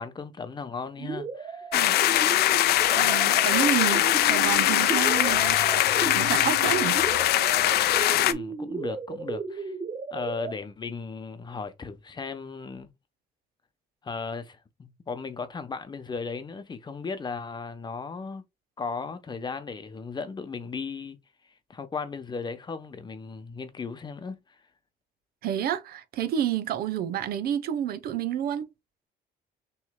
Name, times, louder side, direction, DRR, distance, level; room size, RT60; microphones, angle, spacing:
voice 1, 0.0-1.7 8.2-9.7 10.1-12.9 14.0-18.4 18.8-21.2 21.7-24.4, left 4 dB, 25° left, 0.8 m, -36 dB
sound 1, 1.0-10.5, right 5 dB, 30° right, 0.7 m, -35 dB
sound 2, 1.7-8.3, left 14 dB, 70° left, 0.5 m, -22 dB
voice 2, 2.9-7.0 25.4-28.6, right 10 dB, 65° right, 0.8 m, -29 dB
6.0 x 3.2 x 2.2 m
cardioid pair, 110°, 17 cm